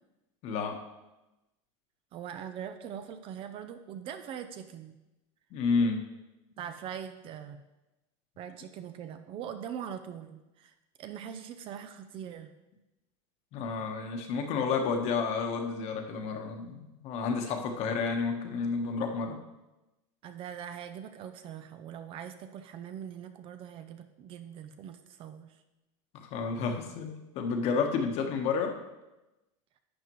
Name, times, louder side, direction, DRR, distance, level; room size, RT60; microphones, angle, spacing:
voice 1, 0.4-0.8 5.5-6.0 13.5-19.4 26.1-28.7, left 5 dB, 40° left, 4 dB, 1.2 m, -30 dB
voice 2, 2.1-5.0 6.6-7.6 8.4-12.5 20.2-25.6, right 8 dB, 35° right, 9 dB, 0.5 m, -42 dB
11.5 x 8.0 x 3.1 m, 1.0 s
supercardioid pair, 150°, 16 cm